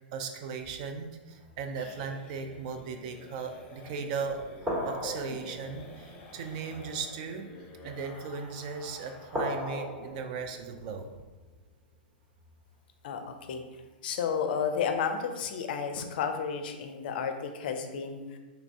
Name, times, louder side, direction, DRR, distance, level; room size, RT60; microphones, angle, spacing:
voice 1, 0.1-4.4 4.8-7.4 7.8-11.1, right 5 dB, 50° right, 5 dB, 0.4 m, -37 dB
sound 1, 0.6-9.7 9.9-10.0 10.4-10.5 10.8-11.2, left 2 dB, 25° left, 0.6 m, -51 dB
sound 2, 0.6-1.8 2.4-2.7 3.5-3.6 4.6-8.2 8.7-8.9 9.3-12.8 13.4-13.6, equal, 20° right, 1.3 m, -39 dB
voice 2, 13.0-13.6 14.0-18.4, left 6 dB, 65° left, 6 dB, 0.4 m, -32 dB
3.1 x 2.5 x 3.4 m, 1.2 s
hypercardioid pair, 115°, 6 cm